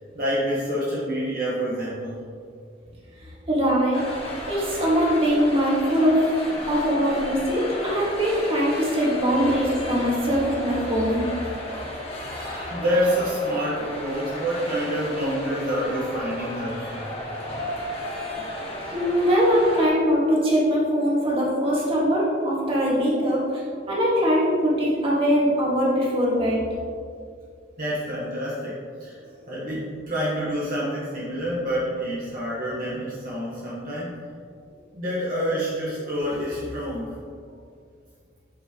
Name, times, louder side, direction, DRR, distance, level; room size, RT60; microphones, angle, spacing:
voice 1, 0.1-2.2 6.5-6.7 12.3-17.1 27.8-29.1 29.5-34.2 34.9-37.1, equal, 50° right, -8 dB, 1.5 m, -27 dB
voice 2, 3.5-4.0 4.4-6.2 6.7-11.3 18.9-23.6 23.9-26.7, equal, 30° right, -6 dB, 2.1 m, -22 dB
sound 1, 3.9-19.9, left 1 dB, 35° left, 1.6 m, -34 dB
8.9 x 7.3 x 3.1 m, 2.2 s
head